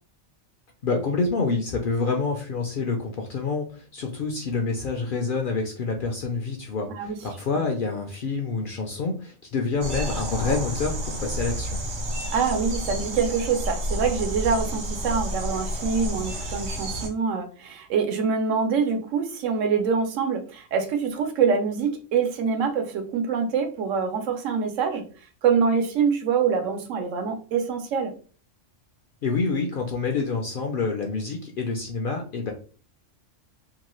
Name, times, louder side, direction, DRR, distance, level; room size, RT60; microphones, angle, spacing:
voice 1, 0.8-11.8 29.2-32.5, left 4 dB, 60° left, 2 dB, 0.5 m, -27 dB
voice 2, 6.9-7.2 7.5-7.7 12.3-25.0 25.4-28.1, right 6 dB, 80° right, 5 dB, 1.0 m, -25 dB
sound 1, 9.8-17.1, right 1 dB, 45° right, 0.7 m, -30 dB
2.8 x 2.3 x 3.0 m, 0.39 s
omnidirectional pair, 1.3 m